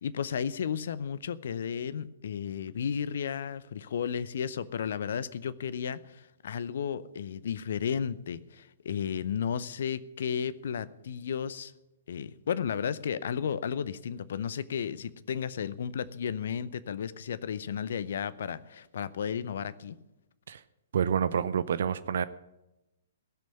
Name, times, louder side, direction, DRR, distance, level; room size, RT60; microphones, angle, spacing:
voice 1, 0.0-11.7 12.1-20.0, left 7 dB, 60° left, 17 dB, 0.7 m, -33 dB
voice 2, 20.9-22.2, right 7 dB, 60° right, 15 dB, 0.6 m, -28 dB
16.5 x 6.2 x 9.5 m, 0.93 s
figure-of-eight pair, 115°, 0 cm